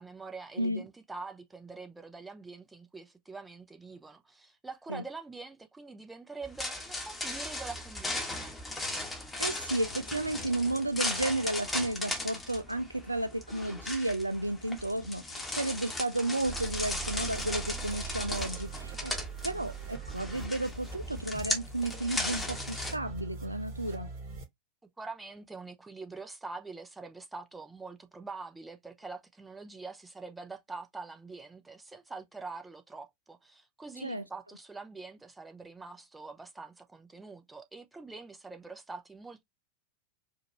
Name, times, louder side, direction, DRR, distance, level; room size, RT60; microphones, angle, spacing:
voice 1, 0.0-8.6 25.0-39.4, right 3 dB, 10° right, 0.8 m, -45 dB
sound 1, 6.4-22.9, left 2 dB, 5° left, 1.3 m, -37 dB
voice 2, 9.4-19.1 19.4-24.1 34.0-34.2, right 1 dB, 85° right, 0.4 m, -33 dB
sound 2, 16.4-24.4, right 5 dB, 50° right, 3.0 m, -42 dB
4.9 x 2.5 x 3.0 m
figure-of-eight pair, 90°, 0 cm